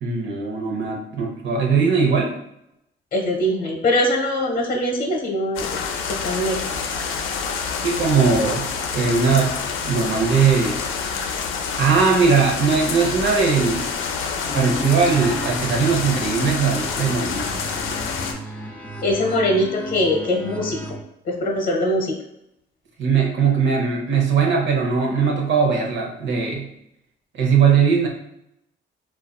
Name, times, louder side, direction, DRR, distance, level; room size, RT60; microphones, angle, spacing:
voice 1, 0.0-2.4 7.8-9.6 9.8-10.8 11.8-13.9 14.5-17.6 23.0-26.7 27.3-28.1, right 5 dB, 70° right, 0 dB, 0.8 m, -20 dB
voice 2, 3.1-5.7 6.1-6.6 19.0-20.8 21.2-22.1, left 1 dB, 45° left, 1 dB, 0.9 m, -22 dB
sound 1, 5.6-18.3, left 5 dB, 80° left, 0.4 m, -27 dB
sound 2, 14.4-21.0, equal, 10° left, 0.4 m, -34 dB
3.8 x 2.4 x 2.3 m, 0.81 s
cardioid pair, 90°, 20 cm